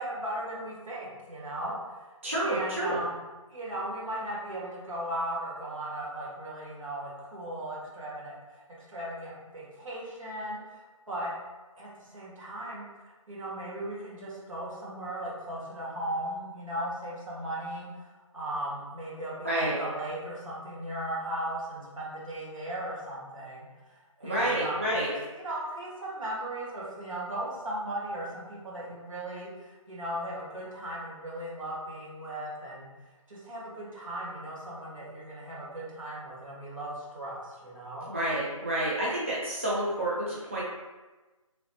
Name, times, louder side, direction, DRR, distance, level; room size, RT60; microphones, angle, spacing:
voice 1, 0.0-2.0 2.4-3.1 3.5-8.6 8.9-11.3 11.8-12.8 13.3-23.7 24.2-32.9 33.3-38.1, right 1 dB, 65° right, -6 dB, 1.5 m, -37 dB
voice 2, 2.2-3.0 19.4-19.8 24.2-25.1 38.1-40.6, right 1 dB, 25° right, -7 dB, 0.3 m, -29 dB
3.1 x 3.1 x 2.7 m, 1.2 s
figure-of-eight pair, 165°, 18 cm